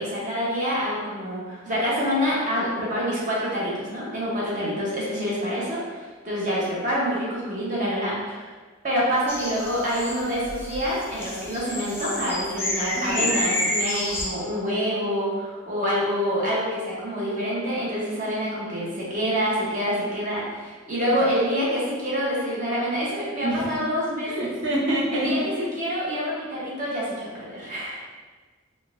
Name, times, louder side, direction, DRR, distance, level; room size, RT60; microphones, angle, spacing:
voice 1, 0.0-8.5 8.8-24.5 25.1-28.0, equal, 40° right, -6 dB, 0.9 m, -27 dB
sound 1, 9.3-14.3, left 1 dB, 10° left, 0.4 m, -29 dB
voice 2, 13.0-13.3 21.1-21.2 23.4-23.6 24.2-25.7, right 1 dB, 65° right, -6 dB, 0.9 m, -27 dB
3.7 x 2.4 x 2.5 m, 1.4 s
head